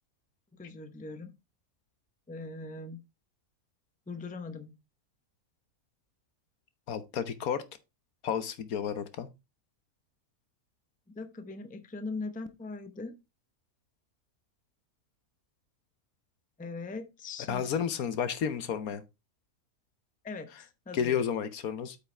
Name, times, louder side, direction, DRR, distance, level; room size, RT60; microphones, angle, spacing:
voice 1, 0.5-1.3 2.3-3.0 4.1-4.8 11.1-13.2 16.6-17.6 20.2-21.2, left 3 dB, 10° left, 0.6 m, -40 dB
voice 2, 6.9-7.6 8.2-9.3 17.5-19.0 20.9-22.0, left 8 dB, 75° left, 1.3 m, -31 dB
8.5 x 5.7 x 3.3 m
omnidirectional pair, 1.6 m